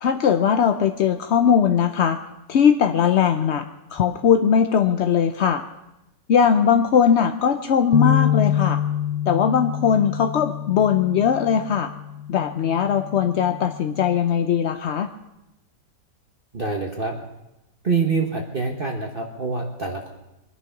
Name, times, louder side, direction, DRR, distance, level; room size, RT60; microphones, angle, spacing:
voice 1, 0.0-2.2 2.5-3.6 3.9-5.6 6.3-8.8 9.3-11.9 12.3-15.1, left 7 dB, 60° left, 8 dB, 0.7 m, -19 dB
sound 1, 7.9-14.2, left 10 dB, 90° left, 1.5 m, -26 dB
voice 2, 16.5-17.2 17.8-20.1, right 4 dB, 35° right, 1 dB, 1.3 m, -25 dB
23.5 x 10.0 x 5.9 m, 0.96 s
omnidirectional pair, 1.9 m